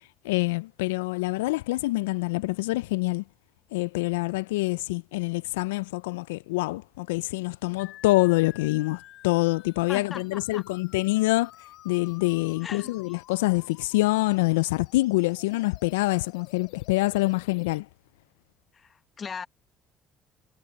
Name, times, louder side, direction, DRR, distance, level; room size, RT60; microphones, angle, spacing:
voice 1, 0.2-3.2 3.7-11.5 11.8-17.9, left 21 dB, 85° left, 0.4 m, -26 dB
sound 1, 7.8-17.8, left 15 dB, 70° left, 7.8 m, -51 dB
voice 2, 9.9-10.6 12.6-12.9 18.7-19.5, left 6 dB, 40° left, 1.3 m, -38 dB
hypercardioid pair, 65°, 0 cm